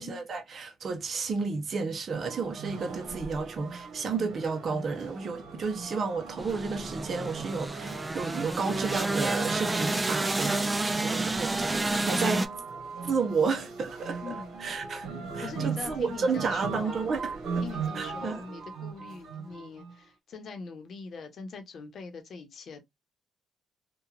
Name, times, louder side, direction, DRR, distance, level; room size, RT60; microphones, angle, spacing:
voice 1, 0.0-12.5 13.0-14.3 14.6-15.1 15.3-17.6 18.0-18.4, right 4 dB, 50° right, 0.7 m, -32 dB
sound 1, 2.1-20.0, right 5 dB, 80° right, 1.0 m, -39 dB
sound 2, 6.4-12.5, right 2 dB, 20° right, 0.4 m, -30 dB
voice 2, 14.2-14.5 15.4-17.1 17.6-22.8, left 5 dB, 60° left, 0.8 m, -42 dB
2.9 x 2.3 x 2.4 m
cardioid pair, 90°, 0 cm